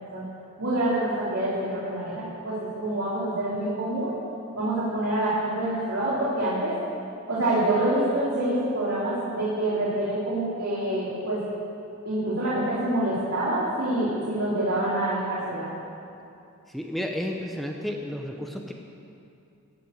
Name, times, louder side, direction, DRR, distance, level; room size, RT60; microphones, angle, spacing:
voice 1, 0.6-4.1 4.5-6.7 7.3-11.4 12.0-15.7, right 1 dB, 70° right, -10 dB, 3.5 m, -26 dB
voice 2, 16.7-18.7, equal, ahead, 2 dB, 0.8 m, -32 dB
15.0 x 7.6 x 9.6 m, 2.7 s
head